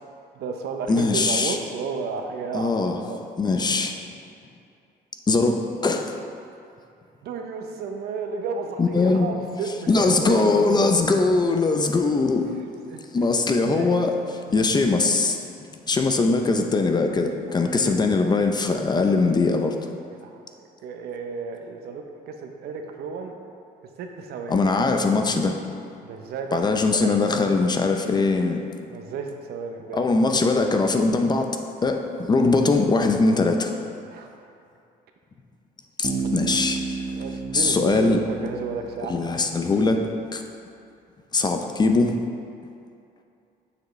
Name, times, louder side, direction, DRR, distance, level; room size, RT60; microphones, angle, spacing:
voice 1, 0.3-3.2 7.2-10.8 12.5-13.0 13.4-14.2 17.5-17.9 20.1-20.4 20.8-23.4 24.0-24.6 26.0-26.6 26.9-27.5 28.9-30.2 34.0-34.3 36.2-36.4 37.1-39.3, right 5 dB, 70° right, 4 dB, 0.7 m, -33 dB
voice 2, 0.9-1.6 2.5-3.0 3.4-4.0 5.3-6.1 8.8-9.3 9.9-12.5 13.1-14.2 14.5-15.4 15.9-19.8 24.5-25.6 26.5-28.6 29.9-33.7 36.0-37.0 37.5-38.2 39.1-40.0 40.3-40.4 41.3-42.2, left 3 dB, 25° left, 4 dB, 0.5 m, -21 dB
Bass guitar, 36.0-39.8, right 4 dB, 20° right, 1.1 m, -32 dB
7.1 x 6.7 x 3.2 m, 2.5 s
cardioid pair, 110°, 17 cm